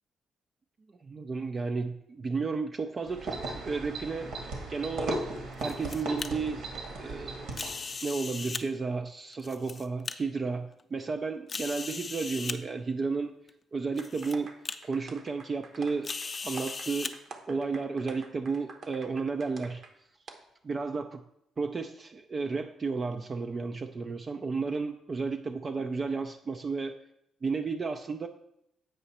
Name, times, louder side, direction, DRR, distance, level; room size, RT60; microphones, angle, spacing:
voice 1, 1.0-4.4 4.7-5.2 5.6-6.7 7.0-7.5 8.0-13.3 13.7-14.6 14.8-16.1 16.4-17.2 17.5-19.8 20.6-21.2 21.6-27.0 27.4-28.3, right 4 dB, 35° right, 5 dB, 0.4 m, -32 dB
sound 1, 3.1-7.9, right 2 dB, 75° right, 1.8 m, -37 dB
sound 2, 5.4-6.3 7.5-8.6 9.3-10.1 10.8-10.9 11.5-12.6 13.5-13.6 14.0-14.3 14.6-14.8 16.0-17.1, left 4 dB, 35° left, 0.5 m, -37 dB
sound 3, 14.0-19.9 20.3-20.4, right 4 dB, 55° right, 0.9 m, -47 dB
7.8 x 5.0 x 4.2 m, 0.81 s
cardioid pair, 90°, 0 cm